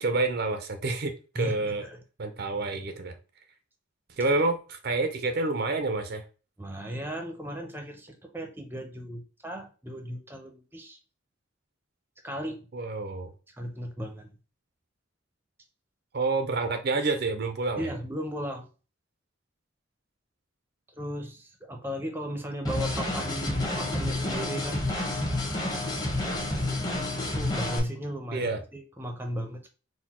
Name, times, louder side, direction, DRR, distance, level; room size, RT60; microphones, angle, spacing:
voice 1, 0.0-1.9 2.2-3.2 4.2-6.2 12.7-13.3 16.1-17.9 28.3-28.6, right 3 dB, 50° right, 0.5 m, -28 dB
voice 2, 1.4-2.0 6.6-8.1 8.3-11.0 12.2-12.7 13.5-14.3 17.8-18.7 21.0-24.8 26.8-27.1 27.3-29.7, equal, 10° right, 0.6 m, -36 dB
sound 1, 22.6-27.8, left 1 dB, 20° left, 1.0 m, -29 dB
4.2 x 2.2 x 4.2 m
head